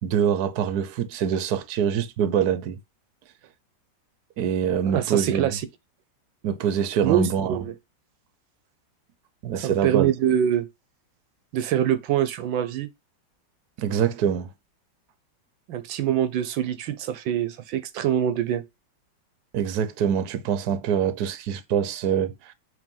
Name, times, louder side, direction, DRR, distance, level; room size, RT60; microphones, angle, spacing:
voice 1, 0.0-2.8 4.4-5.6 6.4-7.6 9.4-10.1 13.8-14.5 19.5-22.5, right 8 dB, 60° right, 1.3 m, -24 dB
voice 2, 4.9-5.6 7.0-7.7 9.6-10.7 11.5-12.9 15.7-18.6, right 10 dB, 85° right, 1.5 m, -24 dB
7.9 x 3.4 x 5.4 m
omnidirectional pair, 2.0 m